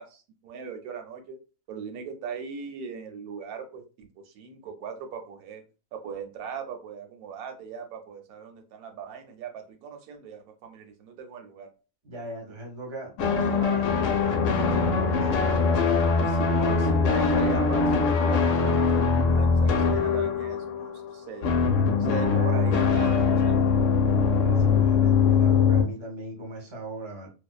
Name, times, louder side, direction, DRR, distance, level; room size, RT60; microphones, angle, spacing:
voice 1, 0.0-1.4 1.7-5.6 5.9-11.7 16.0-21.5 22.0-23.7, right 6 dB, 85° right, 1.1 m, -39 dB
voice 2, 12.0-15.6 24.1-27.3, right 1 dB, 25° right, 0.7 m, -39 dB
sound 1, 13.2-21.1 21.4-25.8, left 5 dB, 70° left, 0.8 m, -22 dB
2.6 x 2.0 x 2.3 m
omnidirectional pair, 1.5 m